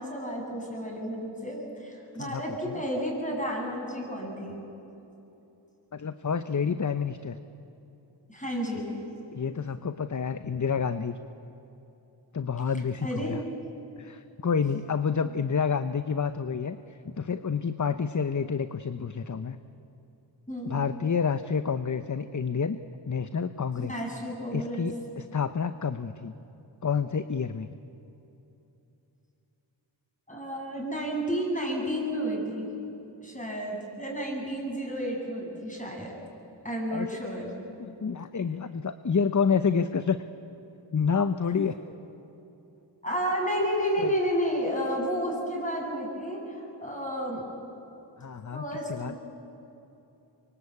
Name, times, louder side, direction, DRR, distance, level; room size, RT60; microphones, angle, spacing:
voice 1, 0.0-4.6 8.3-8.9 13.0-13.4 15.2-15.3 20.5-20.8 23.8-24.8 30.3-32.8 33.2-36.1 36.6-37.5 43.0-47.4 48.5-49.2, equal, 15° left, 0 dB, 7.8 m, -31 dB
voice 2, 2.2-2.8 5.9-7.4 9.3-11.2 12.3-13.4 14.0-19.6 20.7-22.8 23.1-23.9 24.5-26.3 26.8-27.7 36.9-37.2 37.8-40.2 40.9-41.8 44.0-44.1 48.2-49.1, left 6 dB, 40° left, 11 dB, 0.8 m, -29 dB
25.0 x 23.5 x 8.6 m, 2.9 s
cardioid pair, 50°, 47 cm